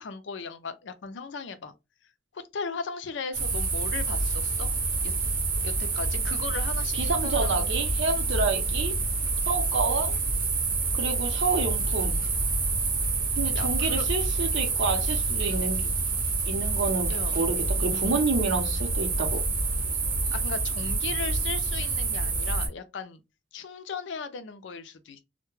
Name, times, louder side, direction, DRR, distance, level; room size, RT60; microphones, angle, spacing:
voice 1, 0.0-1.7 2.3-4.7 5.0-5.1 5.6-7.8 13.5-14.1 17.1-17.4 17.9-18.2 20.3-23.2 23.5-25.2, left 5 dB, 85° left, 0.5 m, -37 dB
sound 1, 3.3-22.7, right 3 dB, 50° right, 0.8 m, -27 dB
voice 2, 6.9-8.9 9.5-10.2 10.9-12.1 13.4-15.9 16.5-19.4, right 3 dB, 85° right, 0.7 m, -29 dB
2.2 x 2.1 x 3.0 m
head